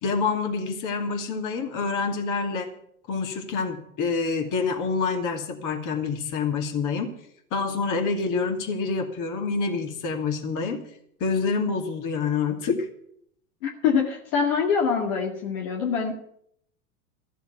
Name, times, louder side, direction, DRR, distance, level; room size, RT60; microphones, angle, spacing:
voice 1, 0.0-2.7 3.1-7.2 7.5-10.8 11.2-12.9, left 4 dB, 45° left, 4 dB, 2.7 m, -27 dB
voice 2, 13.6-16.2, left 6 dB, 60° left, 1 dB, 2.3 m, -24 dB
14.5 x 7.3 x 9.2 m, 0.69 s
hypercardioid pair, 85°, 44 cm